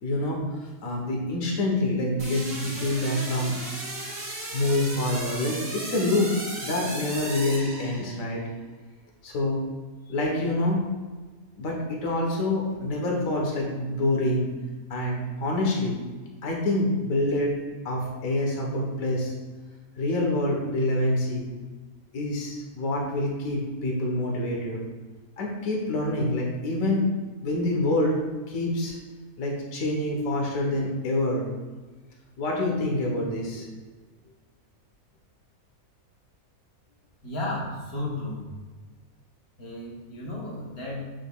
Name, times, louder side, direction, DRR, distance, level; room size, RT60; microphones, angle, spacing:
voice 1, 0.0-3.6 4.5-6.3 6.6-8.4 9.2-9.7 10.1-10.8 11.6-14.5 14.9-15.9 16.4-19.3 20.0-21.4 22.1-24.8 25.4-27.1 27.4-28.2 28.5-29.0 29.4-31.4 32.4-33.7, left 1 dB, 65° left, -1 dB, 1.5 m, -26 dB
sound 1, 2.2-8.4, right 1 dB, 85° right, 2.1 m, -36 dB
voice 2, 37.2-38.4 39.6-41.0, left 2 dB, 85° left, -4 dB, 1.9 m, -33 dB
6.9 x 5.9 x 2.3 m, 1.3 s
omnidirectional pair, 1.5 m